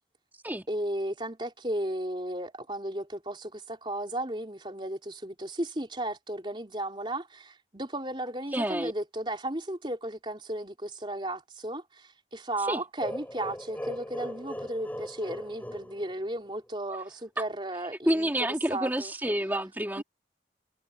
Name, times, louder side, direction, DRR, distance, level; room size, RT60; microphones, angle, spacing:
voice 1, 0.7-19.1 20.0-20.1, right 1 dB, 30° right, 4.1 m, -35 dB
voice 2, 8.5-8.9 12.7-12.8 18.1-20.0, right 1 dB, 10° right, 2.4 m, -28 dB
sound 1, 13.0-16.7, equal, 10° left, 6.8 m, -39 dB
head